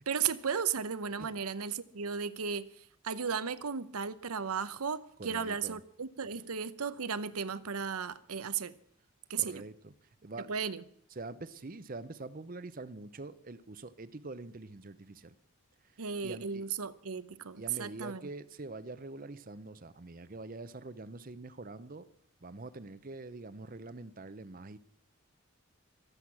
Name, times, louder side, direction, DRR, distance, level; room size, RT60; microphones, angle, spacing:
voice 1, 0.1-8.7 9.3-9.6 10.4-10.8 16.0-18.2, right 6 dB, 85° right, 0.8 m, -35 dB
voice 2, 5.2-5.8 9.4-9.9 10.2-10.5 11.2-15.3 16.2-16.6 17.6-22.0 22.4-24.8, right 3 dB, 40° right, 0.7 m, -45 dB
23.0 x 8.0 x 6.0 m
head